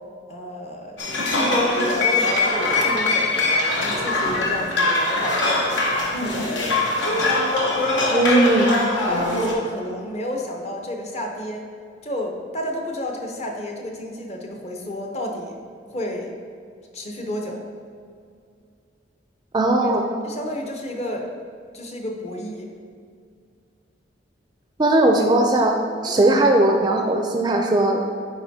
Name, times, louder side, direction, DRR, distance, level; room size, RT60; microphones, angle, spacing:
voice 1, 0.3-5.6 6.1-6.6 8.1-8.6 9.0-11.7 12.0-15.6 15.9-16.3 16.9-17.7 19.8-19.9 20.2-21.3 21.7-22.7, left 1 dB, 35° left, 1 dB, 0.7 m, -31 dB
sound 1, 1.0-9.5, left 2 dB, 80° left, 1.0 m, -22 dB
voice 2, 8.1-8.7 19.5-20.1 24.8-25.8 26.0-28.1, right 2 dB, 25° right, 3 dB, 0.4 m, -18 dB
9.7 x 4.4 x 2.7 m, 2.3 s
head